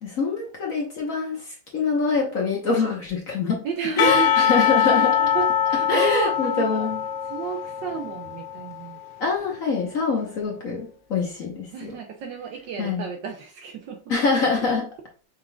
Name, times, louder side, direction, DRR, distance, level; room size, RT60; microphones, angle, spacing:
voice 1, 0.0-3.7 4.0-5.2 5.9-7.0 9.2-12.0 12.8-13.1 14.1-14.9, left 4 dB, 50° left, 1.1 m, -25 dB
voice 2, 3.6-6.9 7.3-9.0 11.7-14.0, right 6 dB, 70° right, 1.2 m, -31 dB
Percussion / Church bell, 4.0-9.0, left 8 dB, 80° left, 0.9 m, -23 dB
6.0 x 3.6 x 2.2 m
omnidirectional pair, 2.4 m